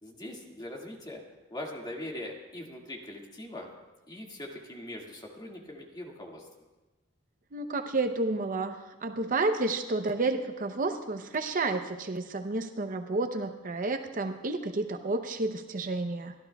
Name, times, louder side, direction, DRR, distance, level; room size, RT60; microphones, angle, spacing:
voice 1, 0.0-1.2 1.5-3.7 4.1-6.5, left 1 dB, 20° left, -1 dB, 2.0 m, -41 dB
voice 2, 7.5-16.3, right 2 dB, 40° right, 6 dB, 0.7 m, -31 dB
29.0 x 13.0 x 2.3 m, 1.1 s
head